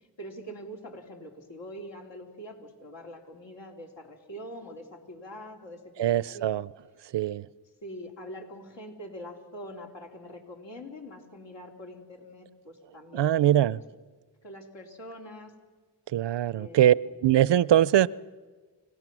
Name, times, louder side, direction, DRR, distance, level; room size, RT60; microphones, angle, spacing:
voice 1, 0.2-6.5 7.8-13.8 14.4-15.5 16.5-17.0, equal, 70° left, 3.5 m, -44 dB
voice 2, 6.0-6.7 7.1-7.5 13.1-13.8 16.1-16.9 17.2-18.1, right 12 dB, 65° right, 0.6 m, -22 dB
29.5 x 16.5 x 6.2 m
cardioid pair, 60°, 45 cm